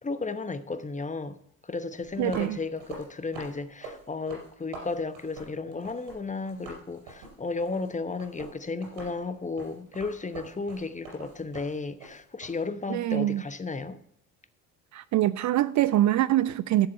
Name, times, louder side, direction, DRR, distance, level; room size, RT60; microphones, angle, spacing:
voice 1, 0.0-1.4 1.6-14.0, left 3 dB, 15° left, 1.0 m, -34 dB
sound 1, 2.0-6.2 6.4-12.6, right 3 dB, 75° right, 5.1 m, -45 dB
voice 2, 2.2-2.6 12.9-13.4 14.9-16.9, right 14 dB, 45° right, 0.5 m, -24 dB
11.5 x 7.5 x 5.3 m
hypercardioid pair, 55°, 42 cm